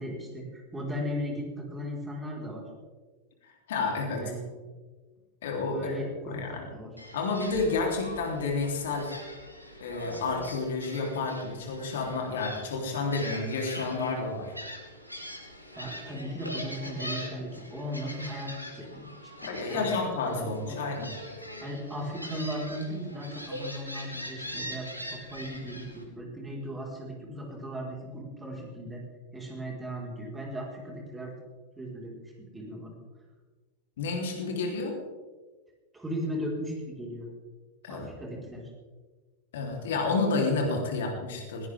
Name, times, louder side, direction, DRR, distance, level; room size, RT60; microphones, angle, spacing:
voice 1, 0.0-2.7 4.1-4.4 5.7-6.9 15.7-18.5 18.9-19.3 19.7-20.8 21.6-29.0 29.3-31.3 31.8-33.0 35.9-37.3 37.9-38.7, equal, 10° right, -1 dB, 4.8 m, -37 dB
voice 2, 3.4-4.2 5.4-5.9 6.3-6.7 7.1-9.2 9.8-14.5 19.4-21.1 34.0-35.0 37.8-38.1 39.5-41.7, left 3 dB, 60° left, 1 dB, 3.6 m, -30 dB
Gull seagull, 7.0-26.0, equal, 90° right, 2.5 m, -42 dB
20.5 x 18.0 x 3.7 m, 1.3 s
figure-of-eight pair, 90°, 0 cm